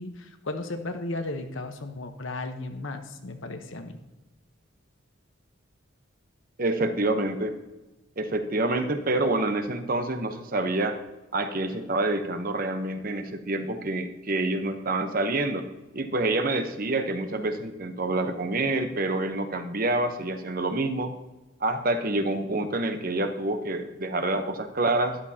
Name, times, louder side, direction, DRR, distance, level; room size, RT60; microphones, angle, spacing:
voice 1, 0.0-4.0, left 2 dB, 70° left, 6 dB, 1.1 m, -35 dB
voice 2, 6.6-7.6 8.2-11.0 11.3-15.7 15.9-21.1 21.6-25.2, right 2 dB, 45° right, 7 dB, 0.9 m, -27 dB
13.0 x 11.5 x 2.8 m, 1.1 s
head